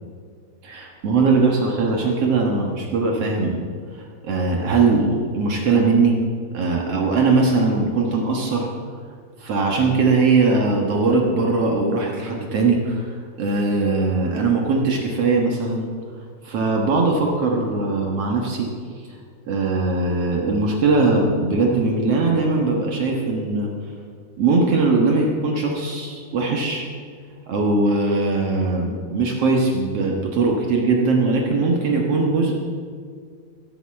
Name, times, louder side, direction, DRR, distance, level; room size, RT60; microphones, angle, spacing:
voice 1, 0.6-3.6 4.2-6.2 6.5-8.7 9.4-15.9 16.4-18.7 19.5-23.7 24.4-26.9 27.5-32.6, right 3 dB, 60° right, 0 dB, 1.7 m, -20 dB
15.0 x 8.0 x 7.1 m, 2.1 s
omnidirectional pair, 4.5 m